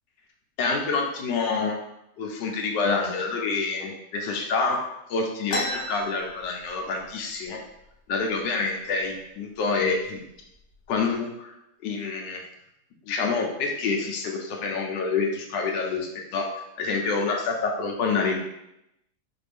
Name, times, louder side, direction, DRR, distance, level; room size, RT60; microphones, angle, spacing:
voice 1, 0.6-1.8 2.2-4.8 5.1-7.6 8.1-10.2 10.9-11.5 11.8-12.4 13.1-16.5 16.8-18.4, left 4 dB, 85° left, 1 dB, 1.4 m, -27 dB
sound 1, 5.5-7.1 7.4-7.5 7.8-8.4 9.0-9.2 9.9-10.0 10.5-11.0, left 1 dB, 55° left, 0.8 m, -33 dB
4.7 x 2.6 x 3.4 m, 0.83 s
omnidirectional pair, 1.9 m